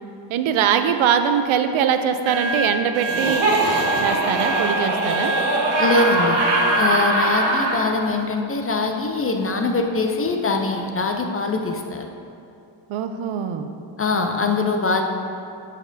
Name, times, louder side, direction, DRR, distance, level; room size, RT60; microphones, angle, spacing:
voice 1, 0.3-3.6 4.0-5.4 12.9-13.7, right 8 dB, 80° right, 8 dB, 0.5 m, -22 dB
sound 1, 2.2-6.9, right 2 dB, 30° right, 0.7 m, -26 dB
Laughter, 3.0-7.8, right 2 dB, 55° right, 1.2 m, -21 dB
voice 2, 5.8-6.4 6.8-12.0 14.0-15.0, left 3 dB, 30° left, 3 dB, 0.4 m, -22 dB
10.5 x 4.2 x 2.6 m, 2.6 s
cardioid pair, 110°, 47 cm